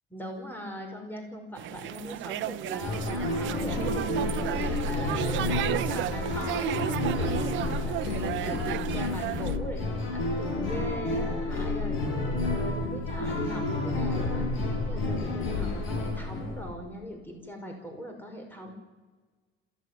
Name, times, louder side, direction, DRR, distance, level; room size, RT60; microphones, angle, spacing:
voice 1, 0.1-18.7, equal, 10° left, 3 dB, 5.4 m, -41 dB
sound 1, 1.6-9.6, right 14 dB, 70° right, 0.9 m, -33 dB
sound 2, 2.8-16.7, left 2 dB, 75° left, 6.7 m, -30 dB
26.0 x 16.0 x 9.7 m, 1.4 s
cardioid pair, 120°, 20 cm